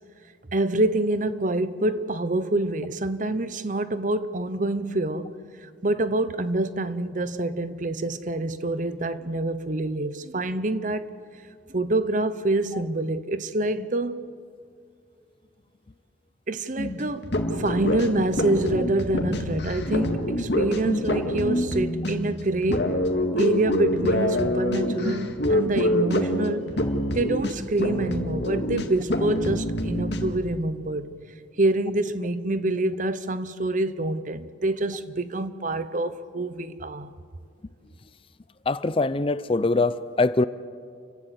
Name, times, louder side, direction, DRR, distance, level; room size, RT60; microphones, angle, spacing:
voice 1, 0.5-5.3 5.6-11.1 11.7-14.3 16.5-22.9 23.4-26.7 27.1-31.1 31.6-37.1, right 2 dB, 45° right, 0.9 m, -26 dB
sound 1, 16.8-30.3, left 1 dB, 65° left, 2.1 m, -26 dB
voice 2, 38.7-40.4, left 3 dB, 30° left, 0.5 m, -23 dB
29.0 x 16.0 x 8.3 m
head